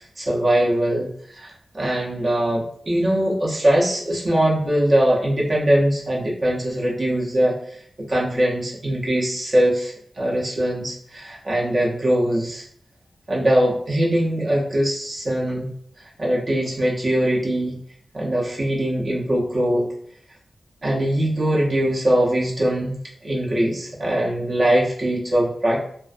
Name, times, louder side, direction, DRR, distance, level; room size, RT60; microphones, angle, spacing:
voice 1, 0.0-7.8 8.1-12.6 13.3-15.7 16.0-17.7 18.1-19.9 20.8-25.8, right 1 dB, 45° right, -3 dB, 0.6 m, -21 dB
2.5 x 2.3 x 2.4 m, 0.62 s
wide cardioid pair, 95°, 0 cm